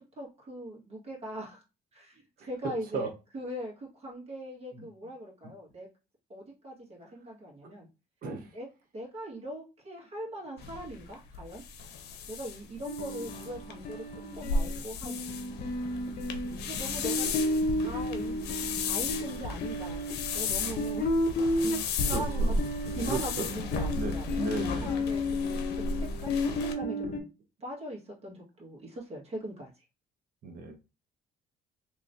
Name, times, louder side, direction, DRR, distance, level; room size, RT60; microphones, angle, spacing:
voice 1, 0.0-1.6 1.9-3.1 3.3-5.9 6.3-7.9 8.5-8.7 8.9-11.6 12.3-15.2 16.6-17.3 17.7-18.6 18.8-21.1 21.5-21.7 22.1-22.5 22.9-25.5 25.9-27.3 27.6-29.7, right 1 dB, 35° right, 1.7 m, -41 dB
voice 2, 2.4-3.1 4.7-4.9 5.4-5.5 7.0-7.1 8.2-8.6 22.1-22.6 23.1-23.5 23.9-25.0 30.4-30.8, right 3 dB, 60° right, 0.9 m, -36 dB
sound 1, 10.6-26.7, left 3 dB, 80° left, 0.6 m, -34 dB
sound 2, 12.8-27.2, left 1 dB, 50° left, 0.8 m, -33 dB
3.1 x 3.0 x 2.7 m
cardioid pair, 110°, 17 cm